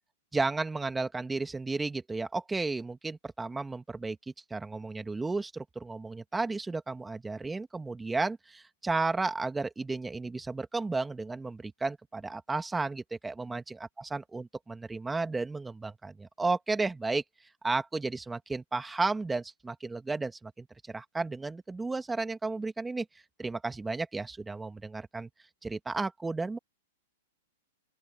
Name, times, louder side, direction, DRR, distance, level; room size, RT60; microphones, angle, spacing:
voice 1, 0.3-4.2 4.5-17.2 17.6-23.1 23.4-25.3 25.6-26.6, right 3 dB, 10° right, 2.1 m, -33 dB
open air
hypercardioid pair, 115°, 0 cm